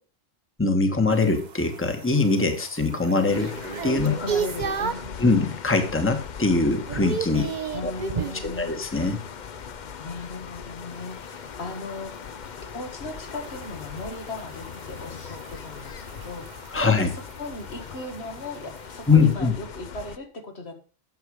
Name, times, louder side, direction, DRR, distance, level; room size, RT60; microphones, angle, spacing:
voice 1, 0.6-3.5 3.8-4.1 5.2-7.5 7.8-7.9 8.4-9.2 16.7-17.1 19.1-19.5, left 3 dB, 10° left, 6 dB, 1.2 m, -22 dB
sound 1, 1.1-5.2 5.7-6.1 6.4-8.5 10.9-19.3, right 6 dB, 50° right, 0.8 m, -35 dB
sound 2, 3.3-20.2, left 7 dB, 50° left, 0.7 m, -40 dB
voice 2, 4.0-5.3 7.7-8.9 10.0-12.3 12.7-16.6 17.0-20.7, left 2 dB, 75° left, 4 dB, 2.0 m, -37 dB
9.5 x 6.6 x 4.9 m, 0.36 s
omnidirectional pair, 1.1 m